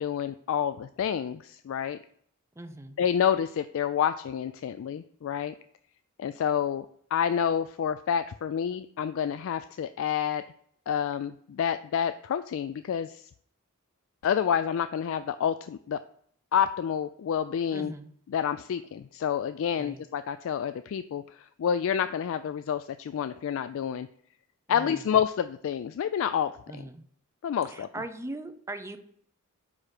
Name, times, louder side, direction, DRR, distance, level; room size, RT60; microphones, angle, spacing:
voice 1, 0.0-2.0 3.0-5.5 6.2-6.9 7.1-10.4 10.9-13.3 14.2-16.0 16.5-17.9 18.3-24.1 24.7-26.5 27.4-27.9, left 8 dB, 65° left, 12 dB, 0.3 m, -28 dB
voice 2, 2.6-3.0 17.7-18.1 19.8-20.0 24.7-25.0 26.7-27.0 27.6-29.0, right 2 dB, 15° right, 8 dB, 0.6 m, -40 dB
5.7 x 4.9 x 6.4 m, 0.63 s
head